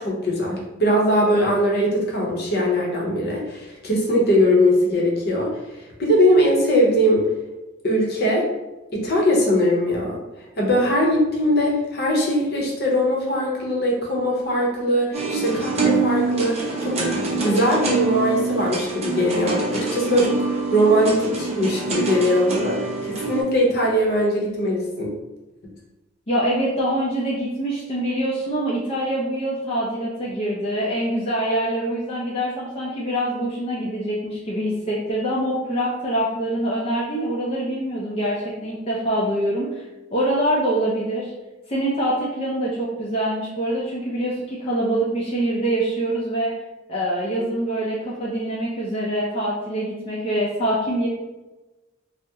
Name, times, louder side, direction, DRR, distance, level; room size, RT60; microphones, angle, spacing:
voice 1, 0.0-7.3 7.8-8.5 8.9-10.2 10.6-16.5 16.8-16.9 17.4-25.1, equal, 55° left, -2 dB, 0.8 m, -21 dB
sound 1, 15.1-23.4, right 3 dB, 35° right, 0.6 m, -25 dB
voice 2, 26.3-39.8 40.1-41.3 41.7-46.5 46.9-51.1, right 1 dB, 30° left, -6 dB, 0.5 m, -24 dB
2.8 x 2.1 x 3.5 m, 1.1 s
head